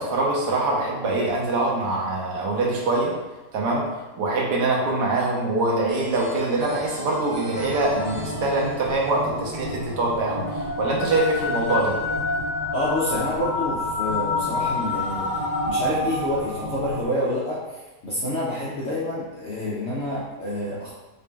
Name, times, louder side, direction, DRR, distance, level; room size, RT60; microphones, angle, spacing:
voice 1, 0.0-3.1 3.5-3.8 4.2-11.9, right 2 dB, 75° right, -3 dB, 1.4 m, -24 dB
sound 1, 5.9-10.5, right 1 dB, 15° left, 0.4 m, -39 dB
sound 2, 7.5-17.0, left 2 dB, 30° right, 1.1 m, -28 dB
voice 2, 12.7-20.9, left 1 dB, 65° left, -6 dB, 0.7 m, -28 dB
3.9 x 3.5 x 2.2 m, 1.1 s
omnidirectional pair, 1.8 m